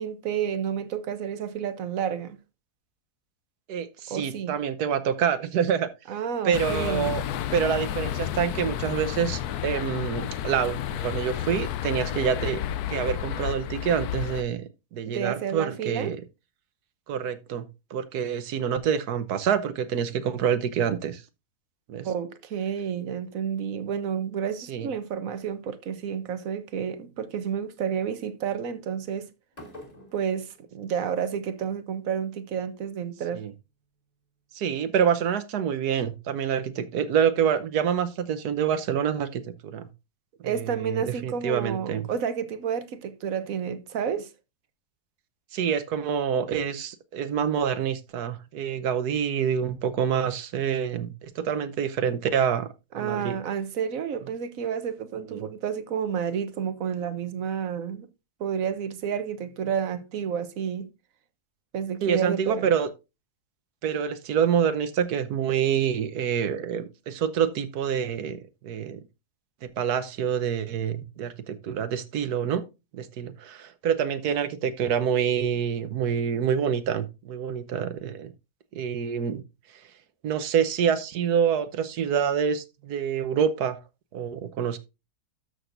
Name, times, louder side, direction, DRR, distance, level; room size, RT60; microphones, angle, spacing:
voice 1, 0.0-2.4 4.1-4.6 6.1-7.1 15.1-16.1 22.0-29.3 30.1-33.4 40.4-44.3 52.9-58.1 58.4-60.9 61.7-62.7 71.2-71.3, right 8 dB, 60° right, 1.2 m, -30 dB
voice 2, 3.7-5.9 6.4-7.2 7.5-12.6 12.9-16.2 17.1-21.2 21.9-22.1 24.7-24.9 33.3-33.5 34.5-39.9 40.4-42.1 45.5-53.4 55.3-55.4 62.0-62.9 63.8-69.0 69.6-72.6 72.9-78.3 78.7-79.4 80.2-83.8 84.1-84.8, right 8 dB, 75° right, 1.4 m, -27 dB
sound 1, 6.5-14.4, left 11 dB, 75° left, 1.1 m, -31 dB
sound 2, 29.5-31.6, left 1 dB, 25° left, 2.4 m, -48 dB
13.0 x 6.4 x 2.5 m
omnidirectional pair, 1.7 m